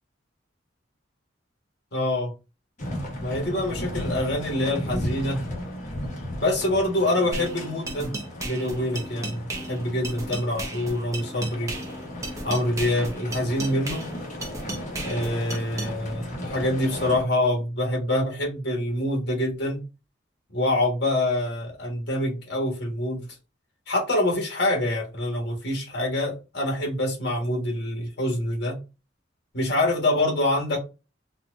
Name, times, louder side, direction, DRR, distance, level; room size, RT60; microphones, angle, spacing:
voice 1, 1.9-2.3 3.2-5.4 6.4-8.1 8.4-11.7 12.4-14.0 15.0-19.8 20.5-23.3 23.9-28.8 29.5-30.8, left 1 dB, 60° left, 1 dB, 1.4 m, -25 dB
sound 1, 2.8-17.2, left 1 dB, 40° left, 1.1 m, -35 dB
sound 2, 7.3-15.9, right 2 dB, 15° right, 0.6 m, -35 dB
4.1 x 2.3 x 2.5 m, 0.29 s
head